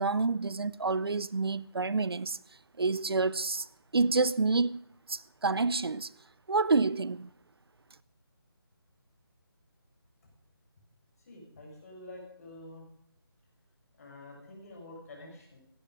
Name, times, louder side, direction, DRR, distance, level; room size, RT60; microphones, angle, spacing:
voice 1, 0.0-2.4 2.8-3.7 3.9-4.8 5.1-6.1 6.5-7.3, right 3 dB, 75° right, 0.7 m, -28 dB
voice 2, 11.2-12.9 14.0-15.6, left 2 dB, 40° left, 6.6 m, -48 dB
16.5 x 13.0 x 5.3 m
figure-of-eight pair, 160°, 13 cm